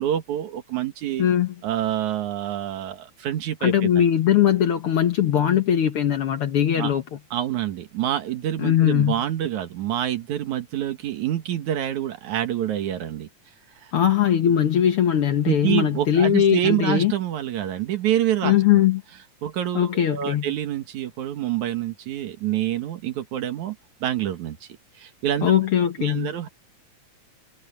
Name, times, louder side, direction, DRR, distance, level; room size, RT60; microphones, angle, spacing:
voice 1, 0.0-1.2 1.6-4.0 6.8-6.9 7.3-13.3 15.4-18.5 19.4-24.6 25.0-25.5 26.0-26.5, right 11 dB, 75° right, 2.9 m, -27 dB
voice 2, 1.2-1.5 3.6-7.2 8.6-9.2 13.9-17.1 18.4-19.0 19.7-20.5 25.4-26.3, left 10 dB, 60° left, 1.7 m, -20 dB
omnidirectional pair, 3.4 m